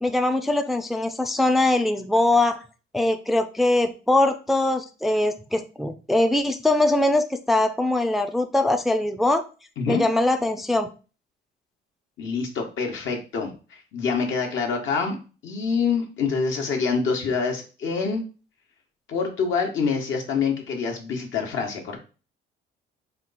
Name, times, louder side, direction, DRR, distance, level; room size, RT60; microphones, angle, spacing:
voice 1, 0.0-2.6 2.9-9.4 9.9-10.9, left 2 dB, ahead, 7 dB, 0.4 m, -22 dB
voice 2, 12.2-15.2 15.4-18.2 19.1-22.0, left 5 dB, 75° left, 2 dB, 1.2 m, -26 dB
4.3 x 2.3 x 4.0 m, 0.34 s
cardioid pair, 90°, 20 cm